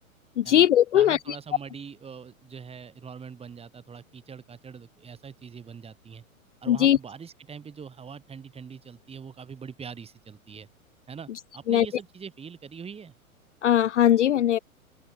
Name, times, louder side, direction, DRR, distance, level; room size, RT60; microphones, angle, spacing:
voice 1, 0.4-1.2 6.7-7.0 11.7-11.9 13.6-14.6, left 11 dB, 55° left, 0.7 m, -19 dB
voice 2, 0.9-6.2 6.6-10.7 11.1-13.2, right 6 dB, 15° right, 7.3 m, -43 dB
figure-of-eight pair, 105°, 43 cm